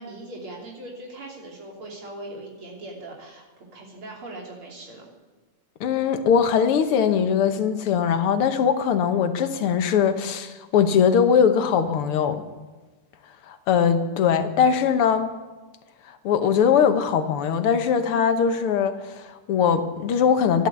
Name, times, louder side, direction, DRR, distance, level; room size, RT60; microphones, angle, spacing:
voice 1, 0.0-3.4 3.7-5.1, right 2 dB, 70° right, -2 dB, 4.1 m, -40 dB
voice 2, 5.8-12.4 13.5-15.3 16.2-20.7, left 7 dB, 80° left, 9 dB, 2.0 m, -21 dB
13.5 x 12.0 x 8.2 m, 1.3 s
omnidirectional pair, 2.4 m